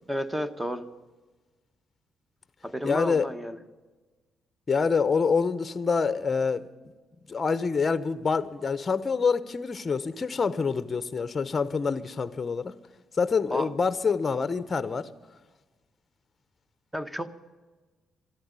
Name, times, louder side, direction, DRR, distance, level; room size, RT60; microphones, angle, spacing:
voice 1, 0.1-0.9 2.6-3.6 13.5-13.7 16.9-17.3, equal, 5° right, 1.0 m, -31 dB
voice 2, 2.8-3.3 4.7-6.7 7.3-12.7 13.2-15.1, left 5 dB, 35° left, 0.8 m, -26 dB
13.0 x 11.5 x 9.5 m
cardioid pair, 90°, 0 cm